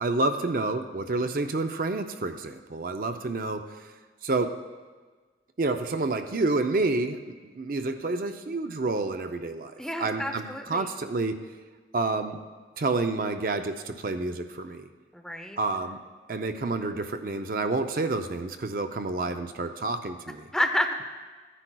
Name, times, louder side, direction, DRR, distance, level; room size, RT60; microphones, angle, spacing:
voice 1, 0.0-3.7 4.2-4.6 5.6-9.7 10.0-11.4 11.9-12.4 12.8-14.9 15.6-16.0 16.3-20.4, right 3 dB, 50° right, 7 dB, 0.5 m, -29 dB
voice 2, 9.8-10.9 15.1-15.6 20.5-21.0, left 1 dB, 5° left, 4 dB, 0.5 m, -29 dB
15.0 x 9.8 x 2.3 m, 1.4 s
head